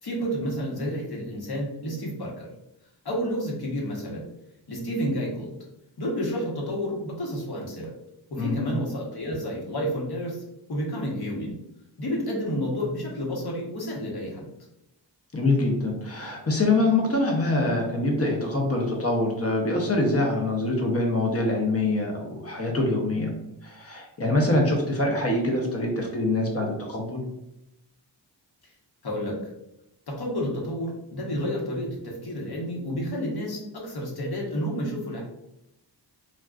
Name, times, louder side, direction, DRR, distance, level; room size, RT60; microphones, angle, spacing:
voice 1, 0.0-2.5 3.0-4.3 4.7-5.6 6.0-7.9 8.3-10.4 10.7-11.6 12.0-14.5 29.0-29.4 30.1-35.2, equal, 60° left, -3 dB, 1.0 m, -30 dB
voice 2, 15.3-23.3 23.6-27.2, left 2 dB, 35° left, 1 dB, 0.7 m, -24 dB
3.8 x 2.3 x 2.3 m, 0.87 s
wide cardioid pair, 100°, 43 cm